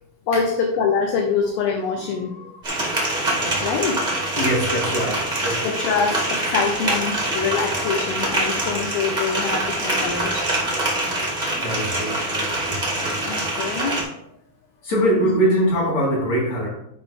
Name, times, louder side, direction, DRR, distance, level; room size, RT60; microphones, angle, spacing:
voice 1, 0.3-2.6 3.6-4.3 5.6-10.5 13.2-14.1 15.2-15.3, left 5 dB, 75° left, 2 dB, 2.4 m, -25 dB
sound 1, 2.6-14.0, right 1 dB, 75° right, 0.4 m, -24 dB
voice 2, 4.4-5.7 11.5-13.2 14.8-16.7, right 1 dB, 45° left, -4 dB, 2.6 m, -23 dB
12.5 x 5.0 x 3.7 m, 0.75 s
omnidirectional pair, 5.1 m